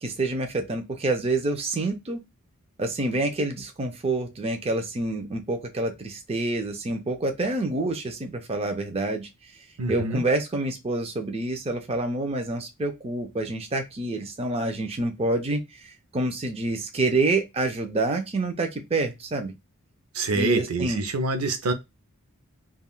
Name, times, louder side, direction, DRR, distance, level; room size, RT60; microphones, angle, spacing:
voice 1, 0.0-2.2 2.8-9.3 9.9-19.5 20.3-21.0, right 2 dB, 25° right, 0.5 m, -27 dB
voice 2, 9.8-10.2 20.2-21.7, right 3 dB, 75° right, 0.5 m, -25 dB
3.4 x 2.3 x 2.3 m
head